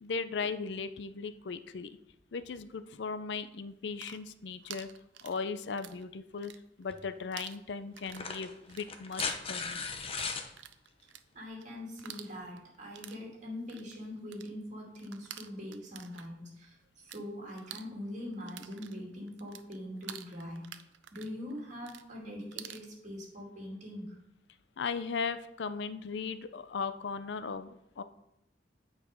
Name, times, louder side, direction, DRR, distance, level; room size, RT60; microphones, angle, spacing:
voice 1, 0.0-2.0 2.3-4.9 5.2-6.5 6.8-9.8 24.8-28.0, left 5 dB, 70° left, 12 dB, 0.5 m, -37 dB
sound 1, 3.8-6.0 6.3-7.0 7.3-17.2 17.5-22.9, right 11 dB, 85° right, 0.5 m, -49 dB
sound 2, 6.9-7.0 8.0-10.5 12.0-12.1, left 5 dB, 30° left, 0.7 m, -37 dB
voice 2, 11.3-20.7 21.1-24.2, left 1 dB, 40° right, -2 dB, 2.5 m, -43 dB
8.5 x 4.8 x 5.1 m, 0.82 s
head